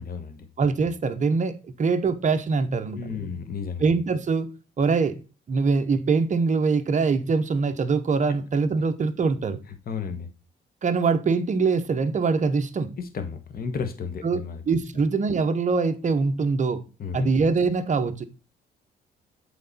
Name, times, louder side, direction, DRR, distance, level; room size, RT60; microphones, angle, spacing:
voice 1, 0.0-0.5 2.9-3.8 8.3-8.4 9.9-10.3 13.0-14.6 17.0-17.3, left 5 dB, 50° left, 1.2 m, -33 dB
voice 2, 0.6-1.5 1.8-3.3 3.8-4.5 4.8-5.1 5.5-9.6 10.8-12.9 14.2-14.4 14.7-16.8 17.1-18.3, right 4 dB, 40° right, 1.0 m, -23 dB
8.2 x 3.9 x 4.1 m
cardioid pair, 90°, 20 cm